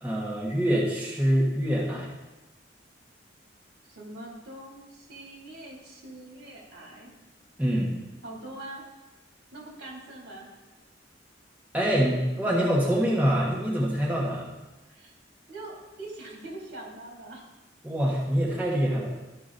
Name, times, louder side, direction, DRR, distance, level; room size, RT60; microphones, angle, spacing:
voice 1, 0.0-2.1 7.6-8.0 11.7-14.5 17.8-19.1, equal, 10° right, -4 dB, 1.4 m, -25 dB
voice 2, 3.8-7.1 8.2-8.9 9.5-10.5 14.9-15.1 15.5-17.4, right 2 dB, 60° right, -2 dB, 2.7 m, -43 dB
13.5 x 6.0 x 3.9 m, 1.1 s
head